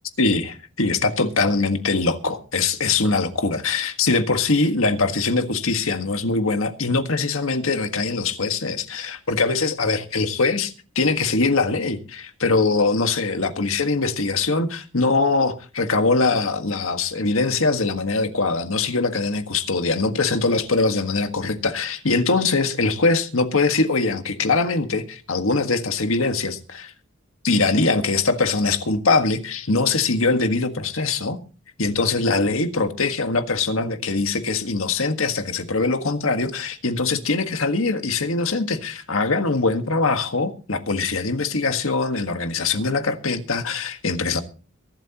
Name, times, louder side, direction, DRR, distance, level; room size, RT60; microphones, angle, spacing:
voice 1, 0.2-26.9 27.4-31.4 31.8-44.4, left 3 dB, 80° left, 1.7 m, -22 dB
23.5 x 12.0 x 3.0 m
head